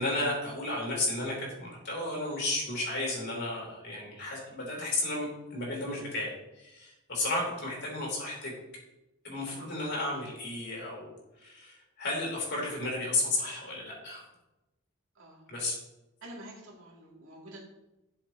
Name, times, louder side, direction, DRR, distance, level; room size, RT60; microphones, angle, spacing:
voice 1, 0.0-8.5 9.2-11.1 11.4-14.2 15.5-15.8, left 2 dB, 55° left, -2 dB, 3.6 m, -33 dB
voice 2, 15.1-15.5 16.2-17.6, right 1 dB, 65° right, -4 dB, 2.7 m, -47 dB
12.0 x 7.1 x 3.1 m, 0.96 s
head